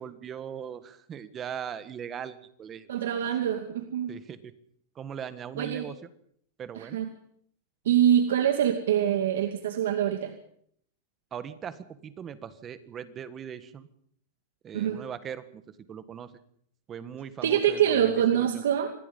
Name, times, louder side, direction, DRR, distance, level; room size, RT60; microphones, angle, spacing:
voice 1, 0.0-3.2 4.1-4.5 4.9-6.0 6.6-7.0 11.3-13.9 14.6-15.6 15.9-16.3 16.9-18.6, right 8 dB, 20° right, 12 dB, 1.5 m, -40 dB
voice 2, 2.9-4.1 5.6-5.9 6.8-7.1 7.8-10.3 14.7-15.0 17.4-18.9, right 10 dB, 90° right, 6 dB, 2.4 m, -25 dB
26.5 x 21.0 x 5.5 m, 0.66 s
supercardioid pair, 165°, 0 cm